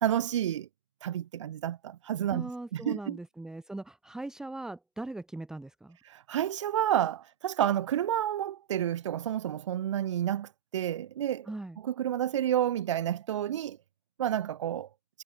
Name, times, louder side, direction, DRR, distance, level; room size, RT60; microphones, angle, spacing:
voice 1, 0.0-0.7 1.0-3.2 6.1-11.5 11.8-13.8 14.2-14.9, right 11 dB, 65° right, 0.4 m, -30 dB
voice 2, 2.3-6.0 11.4-11.8, right 2 dB, 5° right, 1.0 m, -40 dB
hypercardioid pair, 125°, 17 cm